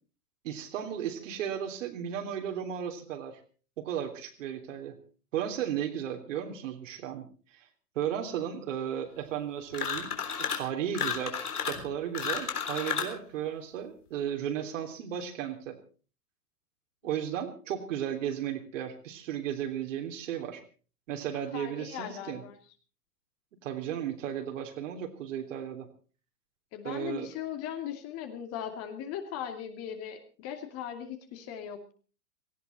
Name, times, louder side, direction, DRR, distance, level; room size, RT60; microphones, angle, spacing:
voice 1, 0.4-3.4 3.8-5.0 5.3-7.3 7.5-7.7 7.9-10.1 10.5-15.8 17.0-20.6 21.1-22.4 23.6-25.9 26.8-27.3, right 9 dB, 50° right, 5 dB, 3.3 m, -35 dB
sound 1, 9.7-10.7 10.9-13.2, left 7 dB, 70° left, 3.8 m, -32 dB
voice 2, 21.5-22.6 26.7-31.9, left 9 dB, 30° left, 6 dB, 2.6 m, -38 dB
18.0 x 17.5 x 4.3 m, 0.39 s
figure-of-eight pair, 110°, 47 cm